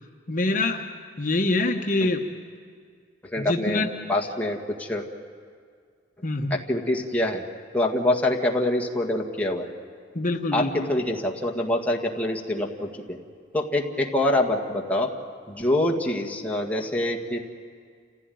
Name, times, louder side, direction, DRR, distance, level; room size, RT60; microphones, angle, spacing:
voice 1, 0.3-0.9 1.2-2.3 3.4-3.9 6.2-6.6 10.1-10.9, left 2 dB, 45° left, 3 dB, 1.1 m, -25 dB
voice 2, 3.2-3.8 4.1-5.1 6.5-7.4 7.7-9.7 10.5-13.2 13.5-15.1 15.5-17.4, left 1 dB, 10° left, 0 dB, 1.8 m, -25 dB
28.5 x 16.0 x 9.3 m, 2.1 s
head